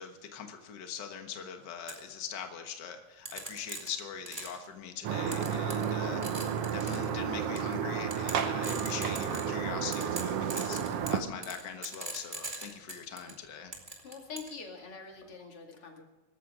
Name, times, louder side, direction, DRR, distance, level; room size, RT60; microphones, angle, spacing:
voice 1, 0.0-6.2 6.7-13.7, left 7 dB, 65° left, 5 dB, 1.0 m, -42 dB
sound 1, 1.9-2.0 3.3-4.6 5.3-6.0 6.2-7.1 7.6-7.7 8.1-9.6 9.9-13.3 13.7-14.5, right 2 dB, 15° right, 2.4 m, -40 dB
sound 2, 5.0-11.2, right 8 dB, 70° right, 1.4 m, -32 dB
voice 2, 5.8-6.3 14.0-16.0, left 5 dB, 45° left, 2 dB, 2.9 m, -45 dB
25.0 x 13.5 x 3.7 m, 1.1 s
omnidirectional pair, 4.0 m